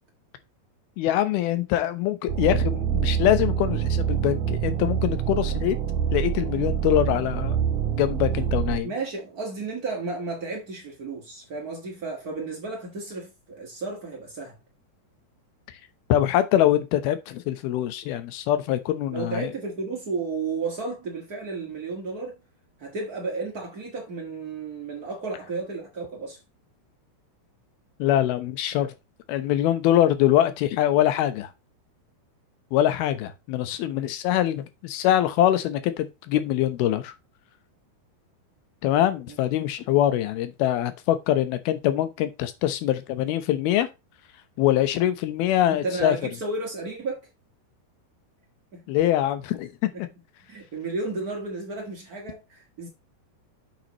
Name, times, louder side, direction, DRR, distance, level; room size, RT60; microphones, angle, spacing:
voice 1, 1.0-5.8 6.1-7.6 8.0-8.9 16.1-19.5 28.0-28.9 29.3-31.5 32.7-37.1 38.8-43.9 44.6-46.2 48.9-49.7, left 12 dB, 75° left, 2.7 m, -23 dB
sound 1, 2.3-8.8, right 9 dB, 65° right, 2.1 m, -26 dB
voice 2, 8.8-14.6 19.1-22.4 22.8-26.4 39.3-39.4 45.7-47.2 48.7-48.8 49.9-50.1 50.5-52.9, right 3 dB, 80° right, 0.8 m, -33 dB
8.0 x 7.4 x 3.0 m
omnidirectional pair, 4.8 m